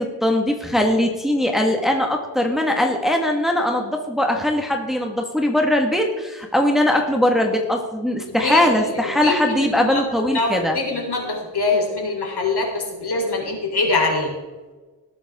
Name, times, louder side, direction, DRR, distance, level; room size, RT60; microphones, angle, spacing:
voice 1, 0.0-10.8, left 1 dB, ahead, 2 dB, 1.7 m, -20 dB
voice 2, 8.3-10.0 10.3-14.3, left 3 dB, 60° left, 1 dB, 3.9 m, -24 dB
19.5 x 8.9 x 3.7 m, 1.2 s
wide cardioid pair, 100°, 43 cm